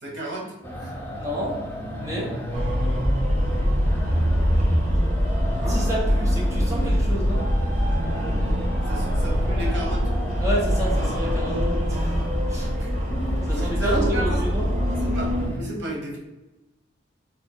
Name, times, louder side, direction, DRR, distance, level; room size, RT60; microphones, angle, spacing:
voice 1, 0.0-0.9 5.4-5.9 8.9-10.1 12.7-12.9 13.4-14.4 14.9-15.3 15.6-16.2, right 1 dB, 75° right, -1 dB, 1.3 m, -32 dB
sound 1, 0.6-15.6, equal, 10° left, 0.5 m, -34 dB
voice 2, 1.2-1.6 2.0-2.3 5.7-7.5 10.4-12.2 12.5-12.7 13.4-14.7, equal, 15° right, -5 dB, 1.0 m, -30 dB
sound 2, 2.5-15.5, equal, 40° right, 0.8 m, -23 dB
3.4 x 2.6 x 4.3 m, 1.0 s
head